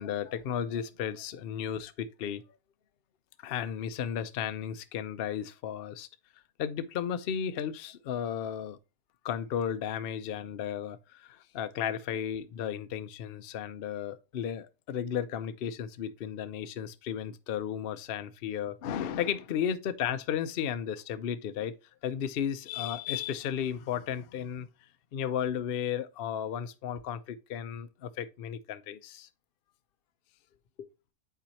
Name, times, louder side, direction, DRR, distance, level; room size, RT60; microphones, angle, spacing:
voice 1, 0.0-2.4 3.4-6.1 6.6-8.8 9.2-21.7 22.0-24.7 25.1-29.3 30.8-30.9, left 9 dB, 70° left, 0.5 m, -34 dB
9.2 x 4.3 x 2.8 m
omnidirectional pair, 1.7 m